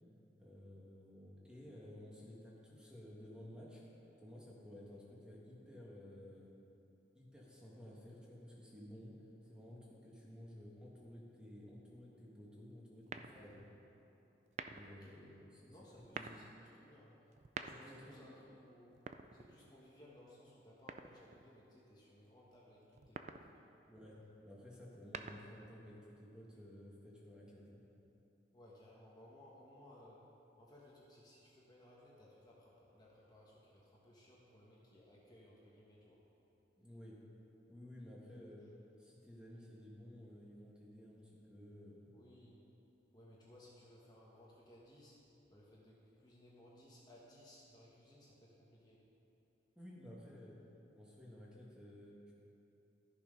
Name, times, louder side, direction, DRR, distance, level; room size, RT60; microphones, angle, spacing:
voice 1, 0.4-3.8 4.2-6.5 7.1-9.2 9.4-13.6 14.7-15.8 16.1-16.4 17.8-18.3 23.9-24.2 24.4-27.8 36.8-37.2 37.7-38.6 39.0-42.1 49.7-50.6 50.9-52.3, left 1 dB, 5° right, -5 dB, 1.5 m, -54 dB
sound 1, 13.1-13.7 14.5-15.0 15.9-16.5 17.3-18.1 18.9-19.8 20.9-21.5 22.9-23.5 24.8-25.7, right 5 dB, 35° right, 0.3 m, -48 dB
voice 2, 13.2-13.6 14.9-15.2 15.7-19.1 19.3-23.7 28.5-36.2 42.1-42.7 43.1-49.1, left 1 dB, 20° left, -5 dB, 1.2 m, -61 dB
13.0 x 7.1 x 5.2 m, 2.9 s
head